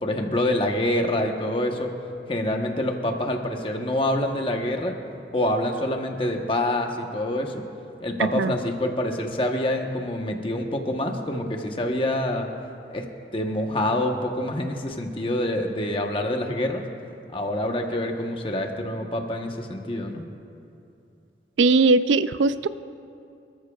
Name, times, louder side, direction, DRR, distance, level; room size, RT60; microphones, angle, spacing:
voice 1, 0.0-1.9 2.3-5.0 5.3-7.6 8.0-12.5 12.9-13.0 13.3-16.8 17.3-20.3, left 1 dB, 30° left, 3 dB, 1.0 m, -26 dB
voice 2, 8.2-8.5 21.6-22.7, right 3 dB, 85° right, 13 dB, 0.4 m, -19 dB
26.5 x 13.5 x 2.4 m, 2.6 s
head